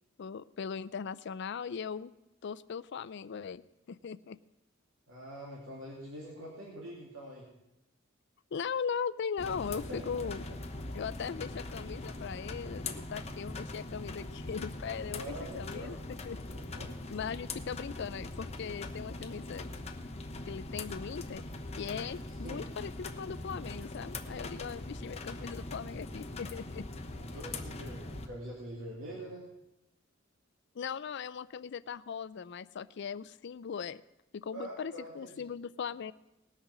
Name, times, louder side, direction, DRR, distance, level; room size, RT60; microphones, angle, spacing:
voice 1, 0.2-2.1 2.4-3.6 3.9-4.4 8.5-10.4 10.8-16.0 16.2-16.4 17.1-19.7 20.5-21.4 21.8-26.9 30.7-34.0 34.3-36.1, left 6 dB, 60° left, 17 dB, 0.4 m, -39 dB
voice 2, 5.1-7.5 9.7-10.6 15.2-16.0 16.5-16.9 22.4-22.6 27.2-29.4 34.5-35.4, right 1 dB, 80° right, -4 dB, 2.7 m, -45 dB
sound 1, 9.4-28.3, left 2 dB, 30° left, 0.9 m, -41 dB
19.0 x 6.6 x 6.1 m, 0.90 s
head